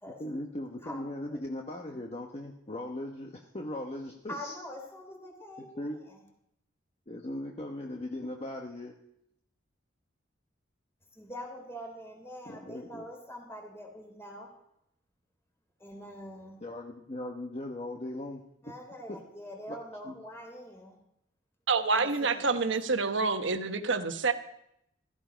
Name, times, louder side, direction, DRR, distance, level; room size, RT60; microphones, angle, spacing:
voice 1, 0.2-4.6 5.6-6.0 7.1-9.0 12.4-13.0 16.6-18.7 19.1-19.2 19.7-19.8 20.0-20.1, left 1 dB, 35° left, 1 dB, 1.1 m, -39 dB
voice 2, 4.3-6.2 11.1-14.5 15.8-16.6 18.6-21.0 21.9-22.8, equal, 15° left, 2 dB, 3.5 m, -44 dB
voice 3, 21.7-24.3, right 4 dB, 80° right, 8 dB, 1.2 m, -27 dB
16.0 x 14.0 x 5.2 m, 0.76 s
head